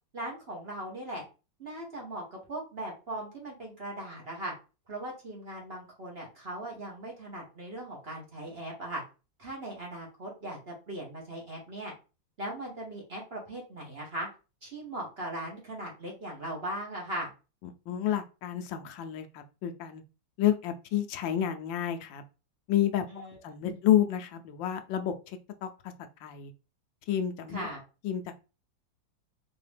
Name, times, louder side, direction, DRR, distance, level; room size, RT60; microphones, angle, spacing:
voice 1, 0.1-1.2 1.6-4.5 4.9-9.0 9.4-11.9 12.4-14.3 14.6-17.3 23.1-23.4 23.7-23.8 27.5-27.8, right 1 dB, 40° right, -2 dB, 1.1 m, -39 dB
voice 2, 17.9-20.0 20.4-22.2 22.7-25.7 26.2-26.5 27.1-27.7 28.0-28.3, left 11 dB, 80° left, 6 dB, 1.3 m, -30 dB
4.5 x 2.8 x 3.4 m, 0.31 s
omnidirectional pair, 2.1 m